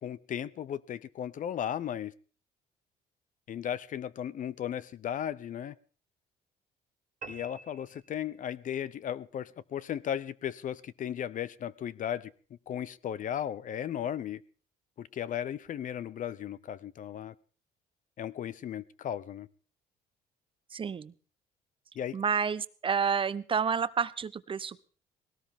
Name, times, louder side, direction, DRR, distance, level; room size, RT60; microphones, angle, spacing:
voice 1, 0.0-2.1 3.5-5.7 7.3-12.3 12.7-14.4 15.0-17.3 18.2-19.5 22.0-22.2, left 10 dB, 50° left, 0.8 m, -36 dB
sound 1, 7.2-8.7, right 4 dB, 55° right, 2.0 m, -47 dB
voice 2, 20.7-21.1 22.1-24.9, right 6 dB, 30° right, 0.8 m, -30 dB
19.5 x 18.0 x 3.7 m
cardioid pair, 110°, 17 cm